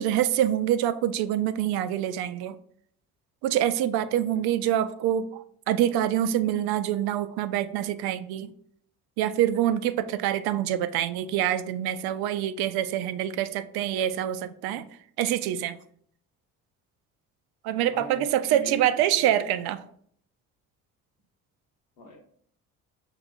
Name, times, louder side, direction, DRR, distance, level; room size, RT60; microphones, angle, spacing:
voice 1, 0.0-2.6 3.4-8.5 9.2-14.9 15.2-15.8 17.6-19.8, right 11 dB, 60° right, 12 dB, 0.5 m, -26 dB
voice 2, 4.1-4.4 17.8-19.4 22.0-22.2, right 1 dB, 80° left, 1 dB, 1.2 m, -42 dB
6.3 x 2.5 x 2.4 m, 0.62 s
hypercardioid pair, 50°, 44 cm